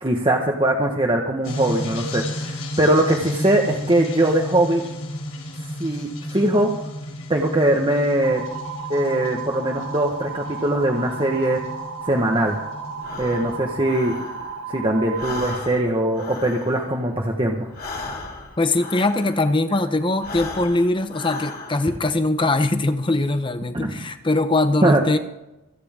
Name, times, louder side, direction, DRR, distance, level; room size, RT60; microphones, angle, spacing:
voice 1, 0.0-4.8 5.8-6.7 7.3-8.4 8.9-11.6 12.0-12.6 13.2-14.1 14.7-17.7 23.7-24.0 24.8-25.0, right 1 dB, 25° right, 0 dB, 1.3 m, -21 dB
sound 1, 1.4-13.6, left 1 dB, 75° left, 3.9 m, -34 dB
sound 2, 8.2-15.6, right 5 dB, 65° right, 1.8 m, -34 dB
Breathing, 13.0-14.7 15.0-19.6 20.1-22.0, left 3 dB, 45° left, 2.5 m, -36 dB
voice 2, 18.6-25.2, left 2 dB, 20° left, 10 dB, 0.8 m, -21 dB
27.0 x 9.6 x 3.7 m, 0.92 s
head